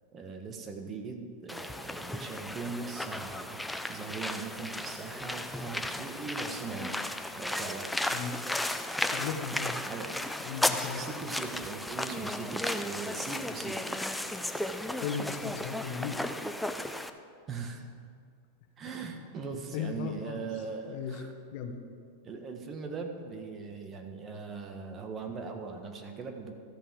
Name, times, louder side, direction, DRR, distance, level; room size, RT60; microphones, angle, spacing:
voice 1, 0.1-3.6 3.9-7.1 7.4-7.9 9.9-10.2 10.7-13.8 17.5-17.9 18.8-21.3 22.2-26.6, right 4 dB, 30° right, 4 dB, 1.3 m, -40 dB
sound 1, 1.5-17.1, left 1 dB, 5° left, 0.5 m, -35 dB
voice 2, 9.1-9.7 10.4-11.0 14.9-16.2 19.7-20.5 20.9-21.2 21.5-21.8, left 7 dB, 60° left, 5 dB, 1.2 m, -36 dB
13.5 x 5.5 x 7.4 m, 2.2 s
hypercardioid pair, 120°, 0 cm